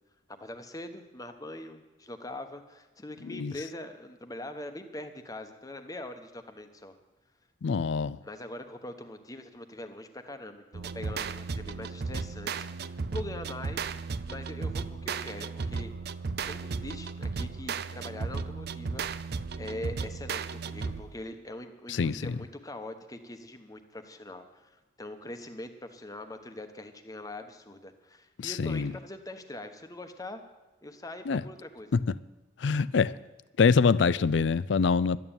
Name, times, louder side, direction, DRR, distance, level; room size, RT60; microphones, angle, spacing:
voice 1, 0.4-7.0 8.2-12.7 13.1-13.9 14.3-15.9 16.5-19.0 19.6-30.4 30.8-32.0, left 1 dB, 20° left, 1.1 m, -42 dB
voice 2, 7.6-8.2 21.9-22.4 28.4-28.9 31.3-31.4 32.6-33.1 33.6-35.2, left 5 dB, 65° left, 0.4 m, -25 dB
sound 1, 10.7-21.2, right 4 dB, 55° right, 0.5 m, -35 dB
12.5 x 9.1 x 8.9 m
head